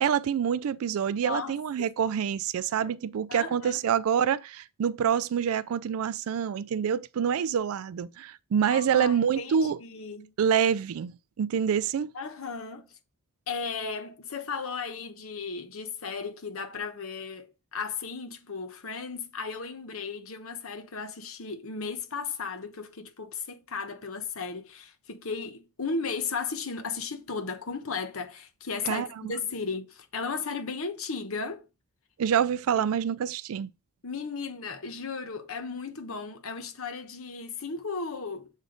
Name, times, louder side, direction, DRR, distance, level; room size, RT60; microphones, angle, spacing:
voice 1, 0.0-9.8 10.4-12.1 28.9-29.1 32.2-33.7, right 8 dB, 70° right, 0.3 m, -26 dB
voice 2, 1.2-1.9 2.8-2.9 3.3-3.8 8.7-10.3 12.1-13.0 13.5-31.6 32.8-32.9 34.0-38.5, left 5 dB, 65° left, 0.9 m, -35 dB
7.3 x 3.5 x 3.8 m
head